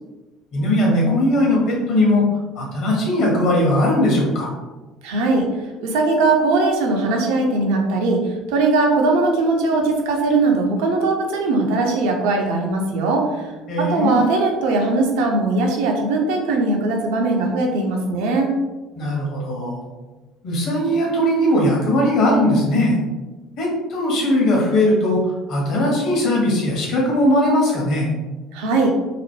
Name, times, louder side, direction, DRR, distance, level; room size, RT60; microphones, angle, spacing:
voice 1, 0.5-2.2 2.6-4.5 13.7-14.2 19.0-19.8 20.4-23.0 23.6-25.2 25.5-28.1, left 1 dB, 55° left, -2 dB, 0.9 m, -19 dB
voice 2, 5.0-5.5 5.8-8.2 8.5-13.5 13.8-18.5 28.5-28.9, right 3 dB, 65° right, 2 dB, 0.5 m, -19 dB
2.9 x 2.0 x 2.9 m, 1.2 s
figure-of-eight pair, 60°, 0 cm